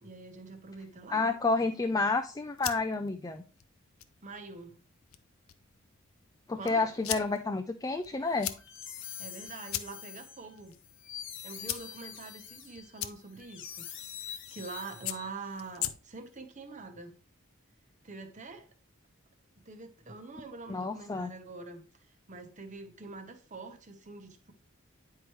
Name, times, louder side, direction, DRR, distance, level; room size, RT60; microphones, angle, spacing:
voice 1, 0.0-1.4 4.2-4.8 6.5-6.9 9.2-10.7 11.4-13.9 14.2-17.1 18.0-18.7 19.6-24.5, right 3 dB, 35° right, 1.0 m, -45 dB
voice 2, 1.1-3.4 6.5-8.5 20.7-21.3, left 3 dB, 15° left, 0.3 m, -30 dB
sound 1, 2.3-16.4, left 12 dB, 90° left, 0.6 m, -43 dB
sound 2, 8.3-15.6, left 9 dB, 60° left, 1.0 m, -45 dB
9.5 x 4.7 x 3.1 m
head